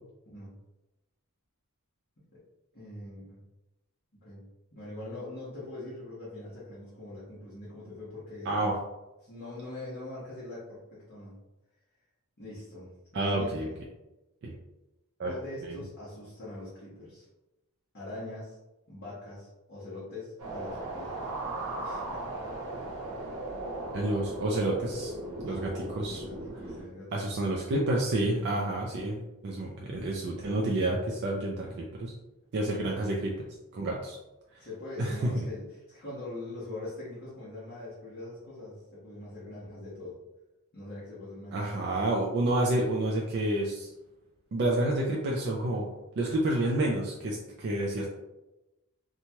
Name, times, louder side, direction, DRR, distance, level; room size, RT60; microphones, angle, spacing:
voice 1, 0.2-0.6 2.7-3.4 4.2-4.5 4.7-8.6 9.2-11.4 12.4-13.7 15.2-17.2 17.9-18.6 18.9-21.2 21.8-22.2 25.4-27.4 34.6-40.2 40.7-42.0, left 2 dB, 50° left, -10 dB, 1.0 m, -42 dB
voice 2, 8.5-8.8 13.1-13.7 14.4-14.5 15.2-15.3 23.9-25.1 25.4-26.2 27.1-32.1 32.5-33.5 33.7-34.2 35.0-35.4 41.5-43.9 44.5-45.9 46.2-48.1, right 1 dB, 50° right, -2 dB, 0.4 m, -29 dB
sound 1, 20.4-26.8, right 2 dB, 75° right, 1.0 m, -37 dB
2.9 x 2.2 x 2.8 m, 0.99 s
head